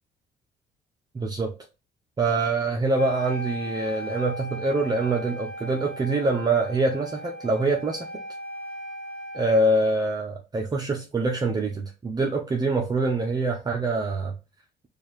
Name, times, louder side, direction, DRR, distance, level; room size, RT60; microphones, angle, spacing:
voice 1, 1.1-1.5 2.2-8.1 9.3-14.3, right 2 dB, 25° right, 0.6 m, -25 dB
Wind instrument woodwind instrument, 3.0-9.9, equal, 40° left, 1.8 m, -37 dB
4.6 x 2.4 x 3.0 m
cardioid pair, 110°, 17 cm